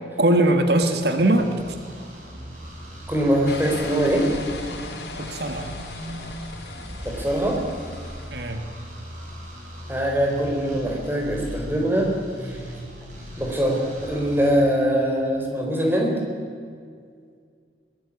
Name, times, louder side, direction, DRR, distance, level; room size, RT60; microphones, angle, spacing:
voice 1, 0.2-1.5 5.2-5.7 8.3-8.6, right 1 dB, 70° right, 6 dB, 1.9 m, -20 dB
sound 1, 1.3-14.5, equal, 45° right, 7.3 m, -38 dB
voice 2, 3.1-4.3 7.0-7.6 9.9-12.1 12.5-12.6 13.4-16.2, equal, 10° right, 0 dB, 4.5 m, -22 dB
sound 2, 3.5-8.5, left 2 dB, 75° left, 4.1 m, -37 dB
22.0 x 20.0 x 8.6 m, 2.2 s
head